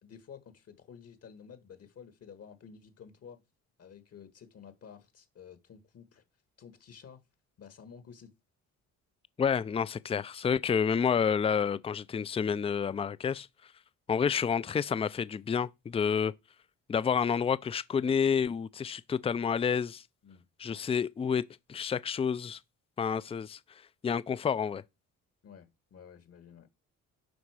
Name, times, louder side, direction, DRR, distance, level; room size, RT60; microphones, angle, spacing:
voice 1, 0.0-3.4 3.8-6.2 6.6-7.2 7.6-8.3 20.2-20.4 25.4-26.7, left 7 dB, 55° left, 1.4 m, -52 dB
voice 2, 9.4-13.5 14.1-16.3 16.9-20.0 20.6-21.4 21.7-22.6 23.0-23.6 24.0-24.8, left 7 dB, 20° left, 0.4 m, -29 dB
11.0 x 3.9 x 4.8 m
cardioid pair, 90°, 30 cm